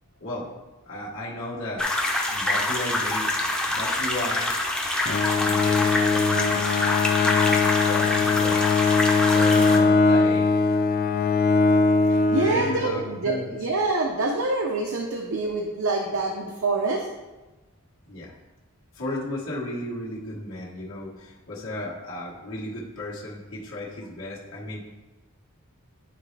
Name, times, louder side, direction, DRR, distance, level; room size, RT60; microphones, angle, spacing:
voice 1, 0.8-1.8 2.2-4.5 5.2-6.8 7.2-8.6 9.3-10.6 12.3-13.5 18.1-18.3 18.9-24.9, left 1 dB, 70° left, -6 dB, 1.5 m, -34 dB
sound 1, 1.8-9.8, left 1 dB, 5° left, 0.6 m, -26 dB
Bowed string instrument, 5.0-13.3, left 4 dB, 40° left, 0.4 m, -21 dB
voice 2, 12.3-17.1, right 3 dB, 70° right, 1 dB, 0.7 m, -26 dB
11.0 x 4.2 x 3.3 m, 1.1 s
head